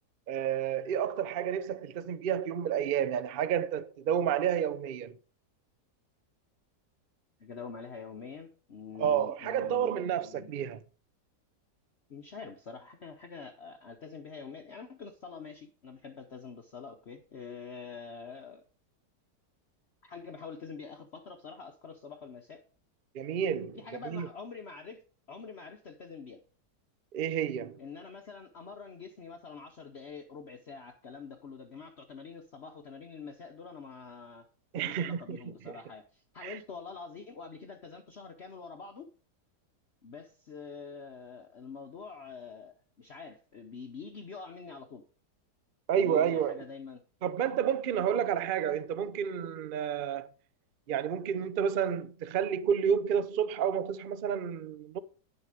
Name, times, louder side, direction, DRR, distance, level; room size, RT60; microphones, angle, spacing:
voice 1, 0.3-5.1 9.0-10.8 23.1-23.8 24.0-24.3 27.1-27.8 34.7-35.8 36.4-36.6 45.9-46.6 47.2-50.3 50.9-55.0, right 8 dB, 70° right, 0.5 m, -30 dB
voice 2, 7.4-9.9 10.2-10.6 12.1-18.6 20.0-22.6 23.7-26.4 27.8-34.5 34.8-39.1 40.0-45.0 46.0-47.0, left 5 dB, 50° left, 1.0 m, -46 dB
9.9 x 7.0 x 4.9 m
omnidirectional pair, 1.8 m